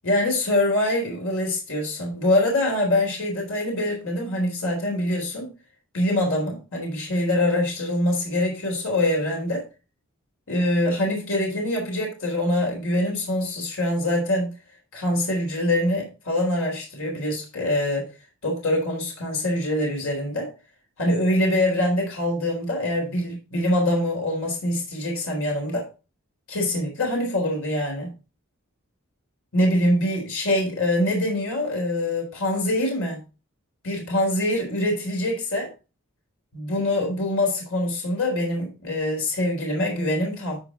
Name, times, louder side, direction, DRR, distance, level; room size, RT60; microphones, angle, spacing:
voice 1, 0.0-5.5 5.9-9.6 10.5-14.5 14.9-18.1 18.4-20.5 21.0-25.9 26.5-28.1 29.5-33.2 33.8-35.7 36.5-40.6, left 1 dB, 65° left, 4.0 m, -24 dB
13.0 x 5.0 x 3.9 m
head